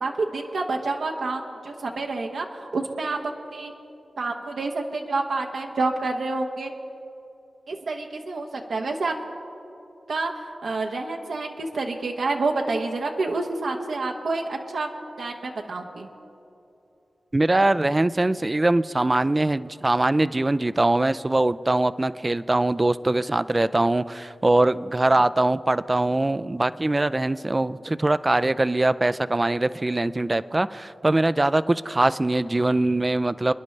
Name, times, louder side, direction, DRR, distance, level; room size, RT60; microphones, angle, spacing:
voice 1, 0.0-3.7 4.2-6.7 7.7-9.1 10.1-10.3 10.6-14.9 15.2-16.1, right 3 dB, 85° right, 1 dB, 0.9 m, -28 dB
voice 2, 17.3-33.5, right 2 dB, 25° right, 15 dB, 0.3 m, -22 dB
29.0 x 10.5 x 3.3 m, 2.8 s
wide cardioid pair, 75°, 0 cm